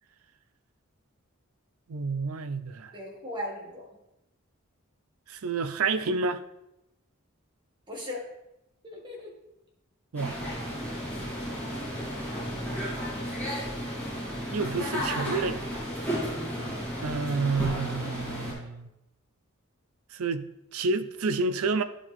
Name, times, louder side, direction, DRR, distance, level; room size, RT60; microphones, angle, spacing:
voice 1, 1.9-3.0 5.3-6.4 10.1-10.4 14.5-15.6 17.0-18.9 20.1-21.8, right 4 dB, 85° right, 0.5 m, -29 dB
voice 2, 2.9-3.9 7.9-8.2 8.8-9.3 16.5-16.9, left 1 dB, 20° right, 2.1 m, -38 dB
sound 1, 10.1-18.5, equal, 10° left, 3.0 m, -33 dB
10.5 x 5.0 x 3.6 m
head